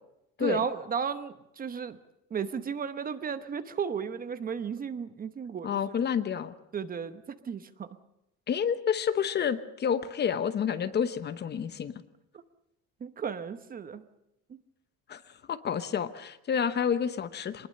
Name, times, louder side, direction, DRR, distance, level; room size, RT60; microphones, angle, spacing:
voice 1, 0.4-2.0 2.3-5.7 6.7-7.9 13.0-14.0 14.5-14.6, right 6 dB, 25° right, 12 dB, 0.9 m, -34 dB
voice 2, 5.6-6.5 8.5-11.9 15.1-15.2 15.5-17.7, left 7 dB, 30° left, 12 dB, 1.0 m, -29 dB
22.0 x 20.5 x 6.6 m, 0.85 s
cardioid pair, 145°, 32 cm